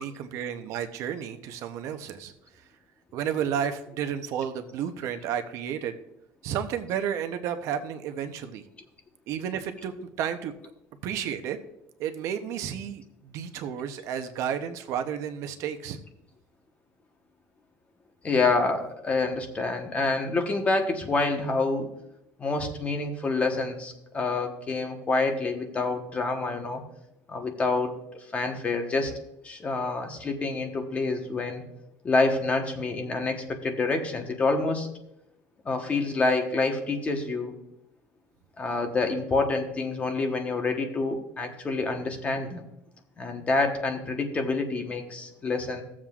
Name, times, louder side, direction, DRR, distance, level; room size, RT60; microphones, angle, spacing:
voice 1, 0.0-2.3 3.1-5.9 6.4-8.6 9.3-10.7 11.0-11.6 12.0-16.0, right 8 dB, 60° right, 8 dB, 0.7 m, -32 dB
voice 2, 18.2-21.9 22.4-26.8 27.3-27.9 28.3-29.1 29.4-31.6 32.0-34.9 35.6-37.5 38.6-42.6 43.2-45.8, left 3 dB, 25° left, 4 dB, 1.1 m, -27 dB
16.5 x 7.3 x 2.4 m, 0.83 s
cardioid pair, 155°, 6 cm